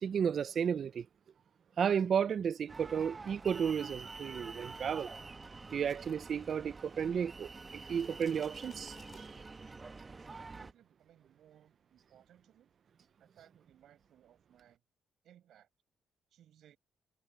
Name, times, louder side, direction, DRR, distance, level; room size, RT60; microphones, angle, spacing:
voice 1, 0.0-1.1 1.8-5.1 5.7-9.3, right 7 dB, 55° right, 0.6 m, -33 dB
sound 1, 2.7-10.7, right 3 dB, 25° right, 1.1 m, -48 dB
sound 2, 5.4-7.1 7.4-9.8, left 5 dB, 35° left, 5.7 m, -62 dB
voice 2, 10.2-12.7 13.2-14.8 15.2-15.7 16.3-16.8, right 11 dB, 75° right, 7.9 m, -63 dB
cardioid pair, 90°, 0 cm